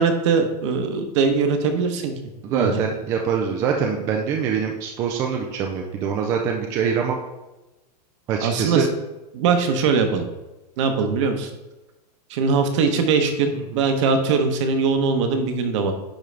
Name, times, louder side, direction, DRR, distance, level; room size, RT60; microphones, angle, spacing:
voice 1, 0.0-2.1 2.5-2.8 8.4-8.9 9.3-10.2 10.8-11.5 12.3-15.9, right 5 dB, 45° right, 7 dB, 0.9 m, -21 dB
voice 2, 2.4-7.2 8.3-8.8 13.6-13.8, right 7 dB, 15° right, 2 dB, 0.3 m, -24 dB
10.0 x 3.7 x 3.3 m, 1.0 s
supercardioid pair, 160°, 21 cm